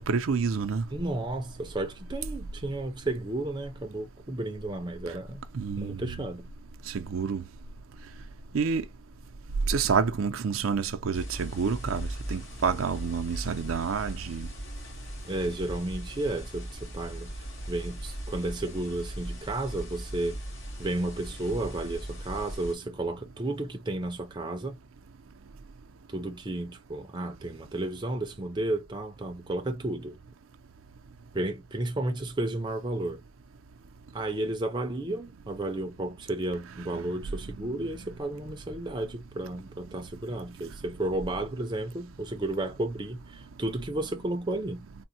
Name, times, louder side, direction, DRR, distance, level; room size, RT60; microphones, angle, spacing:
voice 1, 0.0-0.8 5.5-6.2 6.9-7.4 8.5-8.8 9.7-14.5 36.8-37.7, right 5 dB, 90° right, 0.5 m, -29 dB
voice 2, 0.9-5.4 5.8-6.5 15.2-20.4 20.8-24.8 26.1-30.2 31.3-33.2 34.1-44.8, right 2 dB, 20° right, 0.5 m, -33 dB
sound 1, 11.1-22.8, right 1 dB, 70° left, 1.9 m, -38 dB
3.7 x 2.1 x 2.6 m
head